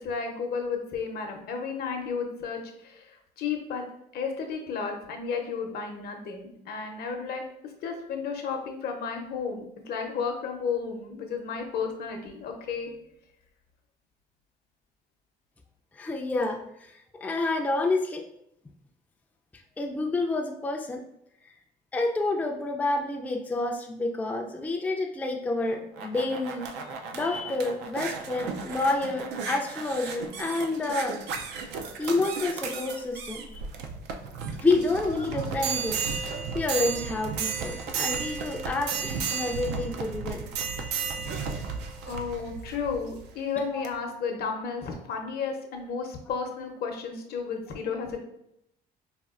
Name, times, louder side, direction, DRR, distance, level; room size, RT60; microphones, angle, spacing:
voice 1, 0.0-3.8 4.1-12.9 42.1-48.2, left 5 dB, 65° left, 4 dB, 0.7 m, -33 dB
voice 2, 15.9-16.9 17.2-18.2 19.8-21.0 21.9-26.7 27.1-31.2 32.0-33.6 34.6-36.0 36.3-40.4, left 2 dB, 10° left, 2 dB, 0.3 m, -29 dB
sound 1, 25.6-43.3 43.8-43.9, right 5 dB, 85° right, 0.4 m, -34 dB
4.1 x 2.3 x 2.4 m, 0.78 s
cardioid pair, 110°, 17 cm